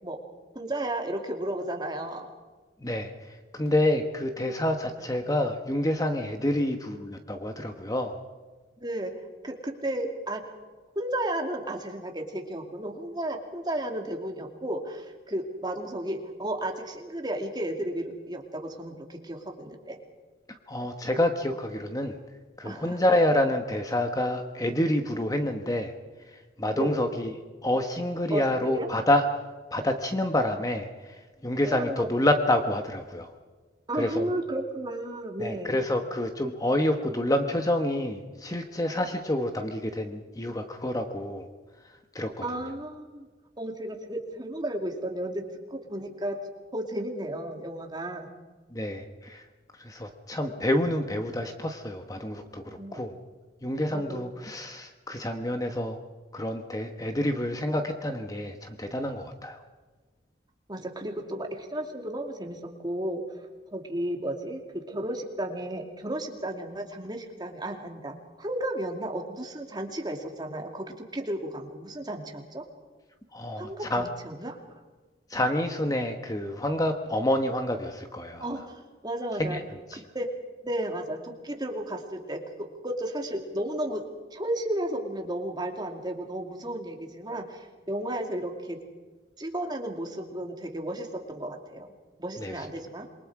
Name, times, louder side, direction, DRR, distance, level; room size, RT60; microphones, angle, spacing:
voice 1, 0.5-2.3 5.0-5.1 6.5-6.6 8.8-9.1 9.4-10.4 10.9-20.0 22.6-23.0 26.7-27.0 28.3-28.4 28.7-28.9 31.6-32.1 33.9-35.8 42.4-43.3 43.6-45.4 45.7-46.4 46.7-48.3 52.8-53.0 53.9-54.3 60.7-63.4 63.7-72.6 73.6-74.6 78.4-79.6 79.9-80.3 80.6-84.0 84.3-88.8 89.4-91.9 92.2-93.1, right 1 dB, 25° right, 3 dB, 2.6 m, -33 dB
voice 2, 2.8-8.2 20.7-22.2 22.6-25.9 26.3-27.3 27.6-29.2 29.7-33.3 33.9-34.3 35.4-41.5 42.1-42.5 48.7-49.4 49.8-53.1 53.6-56.0 56.3-59.6 73.3-74.1 75.3-78.5 79.4-79.6 79.9-80.0 92.4-92.5, left 1 dB, 20° left, 5 dB, 1.2 m, -28 dB
27.5 x 23.0 x 4.9 m, 1.3 s
head